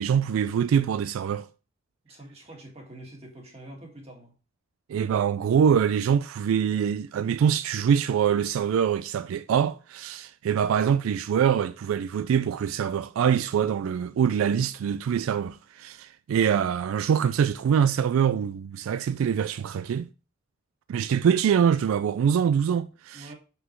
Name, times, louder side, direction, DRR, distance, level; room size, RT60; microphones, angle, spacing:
voice 1, 0.0-1.5 4.9-20.1 20.9-23.3, right 8 dB, 85° right, 0.3 m, -24 dB
voice 2, 2.1-4.3 23.1-23.3, right 1 dB, 30° right, 1.8 m, -45 dB
5.8 x 5.7 x 3.1 m
head